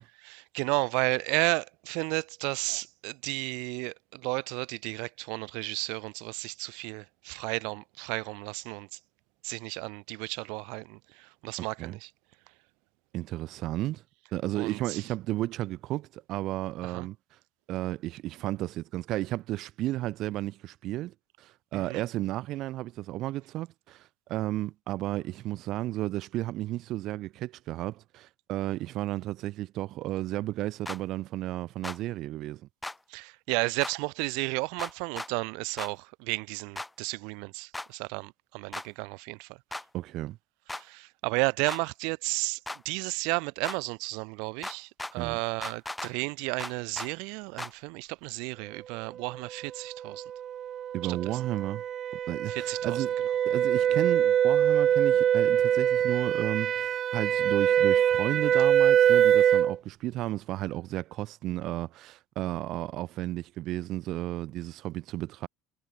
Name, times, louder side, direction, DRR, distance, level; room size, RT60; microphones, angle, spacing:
voice 1, 0.2-9.0 9.4-12.1 14.5-15.1 16.8-17.1 21.7-22.0 33.1-39.6 40.7-42.6 42.8-50.2 51.0-51.4 52.5-53.0, right 33 dB, 75° right, 1.3 m, -33 dB
voice 2, 13.1-14.0 14.3-17.2 17.7-32.6 39.9-40.4 45.2-45.4 50.9-51.8 52.3-53.1 53.4-65.5, right 15 dB, 50° right, 3.4 m, -33 dB
sound 1, 30.9-31.0 31.8-32.0 32.8-33.0 33.8-33.9 34.8-35.3 35.8-35.9 36.8-36.9 37.7-37.9 38.7-38.9 39.7-39.9 40.7-40.8 41.7-41.8 42.7-42.8 43.6-43.8 44.6-45.1 45.6-46.1 46.6-47.1 47.6-47.7, left 2 dB, 5° left, 1.1 m, -36 dB
sound 2, 49.8-59.8, right 10 dB, 35° right, 0.5 m, -24 dB
cardioid pair, 155°, 0 cm